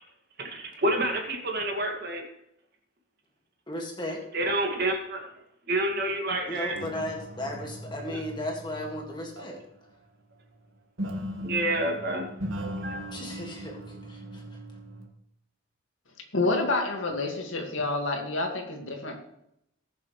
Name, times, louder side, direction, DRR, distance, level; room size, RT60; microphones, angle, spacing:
voice 1, 0.4-2.3 4.3-5.2 5.7-6.7 8.1-8.2 11.4-12.2 12.8-13.0, right 1 dB, 50° right, 1 dB, 2.2 m, -28 dB
voice 2, 3.7-4.2 6.5-9.6 13.1-14.4, left 1 dB, 20° left, 1 dB, 2.0 m, -35 dB
sound 1, 6.7-9.7 11.0-15.1, equal, 85° right, 1.7 m, -38 dB
voice 3, 16.3-19.2, left 2 dB, 75° left, 2 dB, 2.1 m, -28 dB
20.0 x 7.0 x 3.3 m, 0.78 s
head